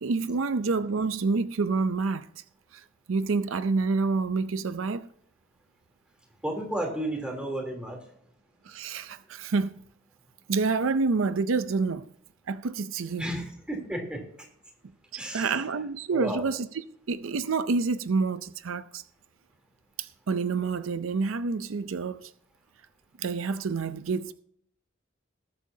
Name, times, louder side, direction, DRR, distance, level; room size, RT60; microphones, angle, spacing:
voice 1, 0.0-2.3 2.7-5.1 8.6-9.8 10.5-12.1 12.5-13.3 15.1-16.7 17.1-19.0 20.0-22.3 23.2-24.3, right 4 dB, 80° right, 0.5 m, -28 dB
voice 2, 6.4-8.0 13.2-14.2 15.1-15.6 16.1-16.5, right 1 dB, 5° right, 3.3 m, -32 dB
20.0 x 8.4 x 2.8 m
head